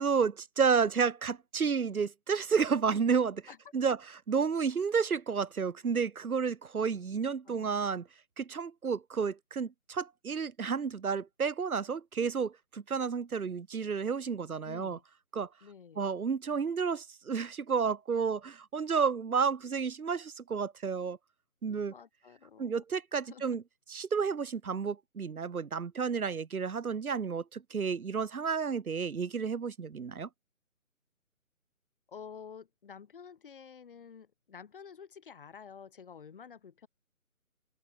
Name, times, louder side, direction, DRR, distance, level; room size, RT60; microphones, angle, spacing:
voice 1, 0.0-3.4 3.7-4.0 4.3-8.1 8.4-15.0 15.3-15.5 16.0-21.2 21.6-21.9 22.6-23.6 23.9-30.3, right 6 dB, 80° right, 0.9 m, -31 dB
voice 2, 7.5-7.8 14.6-15.0 15.6-16.1 21.9-22.8 23.3-23.6 32.1-36.9, left 7 dB, 40° left, 6.9 m, -50 dB
open air
figure-of-eight pair, 155°, 42 cm